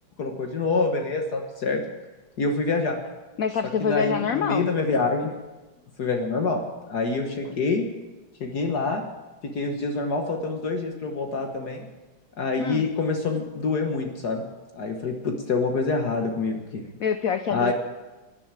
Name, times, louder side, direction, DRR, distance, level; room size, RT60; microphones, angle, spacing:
voice 1, 0.2-1.8 2.4-3.0 3.8-5.4 6.0-6.6 6.9-7.8 8.4-9.0 9.4-11.9 12.4-14.4 14.8-16.8 17.5-17.7, left 3 dB, 55° left, 3 dB, 1.7 m, -26 dB
voice 2, 3.4-4.7 12.6-12.8 17.0-17.7, left 7 dB, 75° left, 10 dB, 0.7 m, -25 dB
12.0 x 11.0 x 8.9 m, 1.2 s
omnidirectional pair, 2.2 m